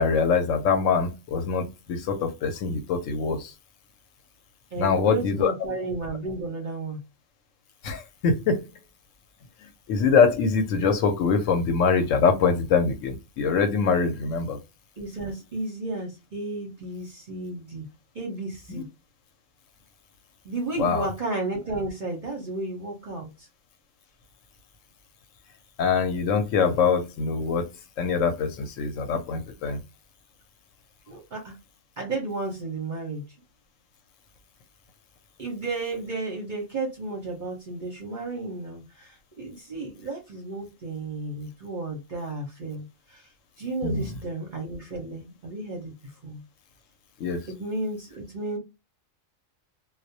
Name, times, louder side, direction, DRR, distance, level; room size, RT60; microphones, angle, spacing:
voice 1, 0.0-3.5 4.8-5.5 7.8-8.7 9.9-14.6 18.7-18.8 20.8-21.1 25.8-27.6 28.0-29.8 43.8-44.1 47.2-47.4, left 5 dB, 70° left, 0.9 m, -23 dB
voice 2, 4.7-7.0 15.0-17.9 18.1-18.8 20.4-23.5 31.1-31.6 32.0-33.2 35.4-42.8 43.1-43.2 43.6-45.9 46.2-46.4 47.5-48.6, right 2 dB, 50° right, 0.6 m, -33 dB
2.3 x 2.0 x 2.6 m
omnidirectional pair, 1.4 m